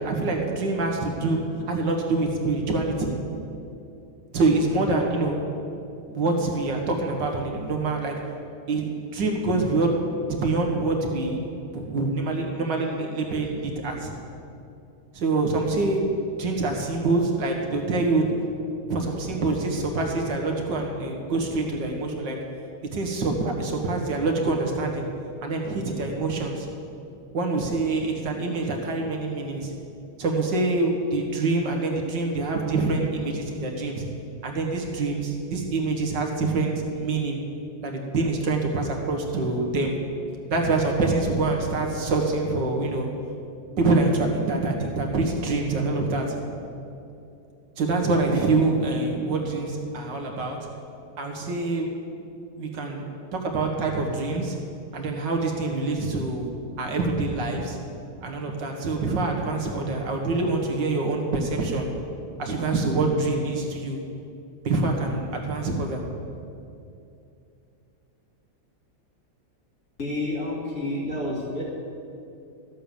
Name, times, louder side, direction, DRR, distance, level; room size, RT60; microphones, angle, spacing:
voice 1, 0.0-1.4 1.7-3.1 4.3-5.4 6.1-8.2 8.7-9.9 10.3-14.1 15.1-16.1 16.4-18.4 18.9-22.4 22.9-25.1 25.4-26.7 27.3-29.7 30.2-34.1 34.4-37.4 37.8-39.9 40.5-43.1 43.8-46.4 47.8-50.6 51.2-51.9 52.6-53.0 53.3-54.6 54.9-56.5 56.8-57.8 58.2-61.9 62.4-64.0 64.6-66.0, right 3 dB, 70° right, 1 dB, 2.1 m, -25 dB
voice 2, 70.0-71.6, left 1 dB, 50° left, -5 dB, 2.8 m, -29 dB
13.5 x 7.9 x 7.0 m, 2.7 s
omnidirectional pair, 2.0 m